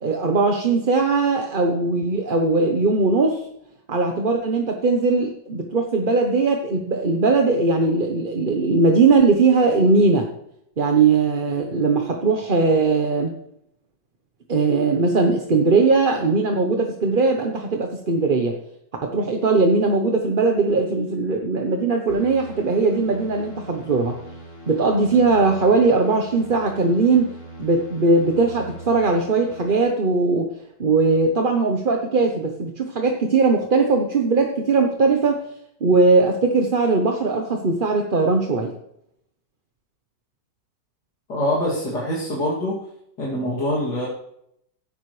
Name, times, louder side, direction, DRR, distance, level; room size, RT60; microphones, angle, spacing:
voice 1, 0.0-3.4 3.9-10.3 10.8-13.3 14.5-18.5 19.0-24.2 24.7-27.3 27.6-30.5 30.8-35.4 35.8-38.7, right 3 dB, 35° right, 3 dB, 1.0 m, -19 dB
sound 1, 22.1-29.8, right 1 dB, 45° left, 3.1 m, -41 dB
voice 2, 41.3-42.8 43.2-44.1, left 1 dB, 70° left, -6 dB, 3.4 m, -24 dB
16.0 x 11.5 x 3.3 m, 0.75 s
omnidirectional pair, 1.9 m